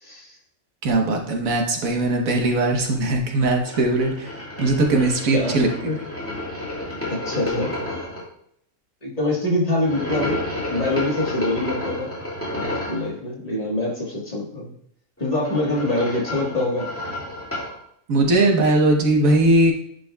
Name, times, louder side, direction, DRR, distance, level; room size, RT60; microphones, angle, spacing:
voice 1, 0.0-0.4 5.3-5.9 7.1-7.7 9.0-10.4 10.7-12.1 12.7-14.7 15.2-16.9, left 1 dB, 30° left, -4 dB, 1.6 m, -25 dB
voice 2, 0.8-5.7 18.1-19.7, right 2 dB, 90° right, 2 dB, 1.5 m, -19 dB
sound 1, 3.6-8.2 9.8-13.1 15.2-17.8, left 1 dB, 10° left, 1.8 m, -31 dB
10.5 x 5.2 x 2.3 m, 0.69 s
omnidirectional pair, 1.4 m